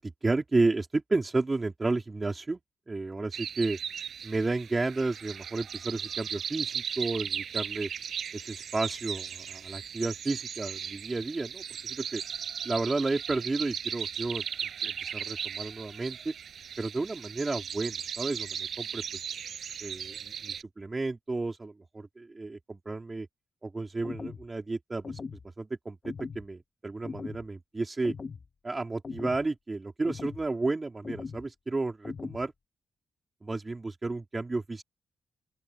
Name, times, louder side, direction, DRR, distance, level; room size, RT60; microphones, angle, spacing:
voice 1, 0.0-2.6 2.9-3.8 4.2-7.9 8.3-12.2 12.6-14.4 14.8-16.3 16.8-19.2 19.8-23.3 23.6-25.2 25.6-28.1 28.6-32.5 33.4-34.8, right 3 dB, 20° right, 3.5 m, -32 dB
sound 1, 3.3-20.6, right 8 dB, 60° right, 7.2 m, -37 dB
sound 2, 24.0-24.5 25.0-25.5 26.0-26.5 27.0-27.4 28.0-28.5 29.0-29.4 30.1-30.5 31.0-31.5 32.0-32.5, left 5 dB, 35° left, 3.3 m, -39 dB
open air
cardioid pair, 130°, 0 cm